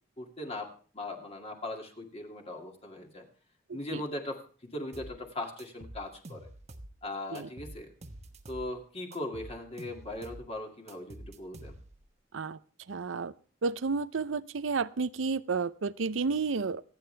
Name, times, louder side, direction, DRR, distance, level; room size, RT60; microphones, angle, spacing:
voice 1, 0.2-3.2 3.7-6.5 7.0-7.9 8.5-11.8, left 1 dB, 35° left, 2 dB, 2.3 m, -39 dB
voice 2, 3.7-4.0 7.3-7.5 12.3-12.6 12.9-13.3 13.6-16.8, right 4 dB, 90° right, 16 dB, 0.6 m, -31 dB
sound 1, 4.9-5.2 5.6-6.9 7.3-8.7 9.1-10.5 10.9-12.1, right 1 dB, 35° right, 1.1 m, -47 dB
26.0 x 8.8 x 3.3 m, 0.40 s
head